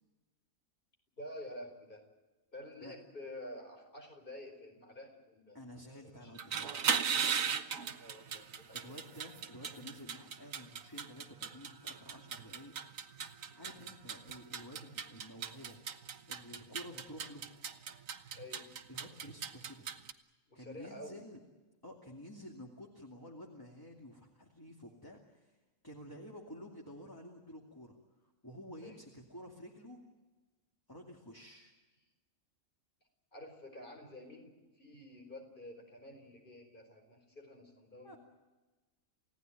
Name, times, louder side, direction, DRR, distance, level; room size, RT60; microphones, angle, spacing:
voice 1, 1.2-2.0 2.5-5.6 6.0-6.3 8.0-9.2 13.5-13.7 18.3-18.7 20.5-21.2 26.0-26.2 28.8-28.9 33.3-38.2, left 1 dB, 40° left, 4 dB, 4.9 m, -50 dB
voice 2, 5.5-7.1 8.7-12.7 13.1-15.8 16.3-17.5 18.9-19.9 20.5-21.4 21.8-25.6 25.8-28.0 28.2-30.0 30.9-31.7 38.0-38.2, equal, 15° left, 0 dB, 2.6 m, -51 dB
sound 1, 6.3-20.1, right 7 dB, 75° right, 1.5 m, -38 dB
29.0 x 17.0 x 9.2 m, 1.2 s
omnidirectional pair, 1.4 m